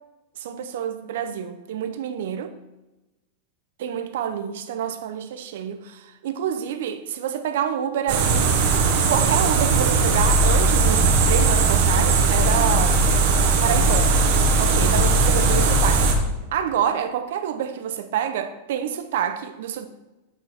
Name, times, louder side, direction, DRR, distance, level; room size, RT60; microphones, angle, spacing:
voice 1, 0.4-2.5 3.8-8.6 8.8-13.0 13.6-14.2 14.6-19.9, right 9 dB, 70° right, 0.9 m, -27 dB
sound 1, 8.1-16.1, right 3 dB, 50° right, 1.4 m, -18 dB
8.7 x 5.4 x 4.5 m
supercardioid pair, 165°, 0 cm